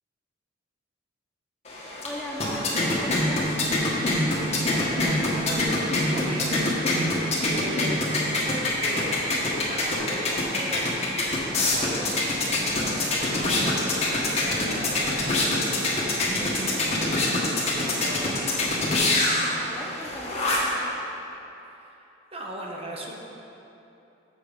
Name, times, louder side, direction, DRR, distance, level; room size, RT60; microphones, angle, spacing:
sound 1, 1.7-20.8, left 1 dB, 35° left, 1.3 m, -25 dB
voice 1, 2.0-3.5 19.6-20.8, equal, 5° left, -4 dB, 0.7 m, -38 dB
voice 2, 4.7-5.7 6.1-6.7 7.4-10.9 11.5-18.5 21.7-22.0 22.3-23.2, right 1 dB, 30° right, -1 dB, 0.9 m, -38 dB
7.4 x 7.3 x 5.1 m, 2.9 s
head